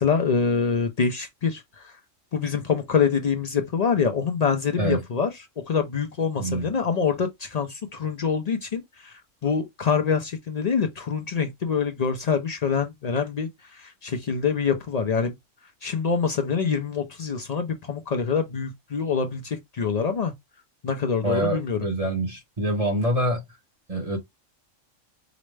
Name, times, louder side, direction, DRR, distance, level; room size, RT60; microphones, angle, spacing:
voice 1, 0.0-2.0 2.3-5.3 5.7-15.3 15.8-20.3 20.8-21.9, left 6 dB, 60° left, 0.4 m, -25 dB
voice 2, 21.2-23.4 23.9-24.2, right 1 dB, 30° right, 0.9 m, -25 dB
4.9 x 2.1 x 3.2 m
omnidirectional pair, 1.3 m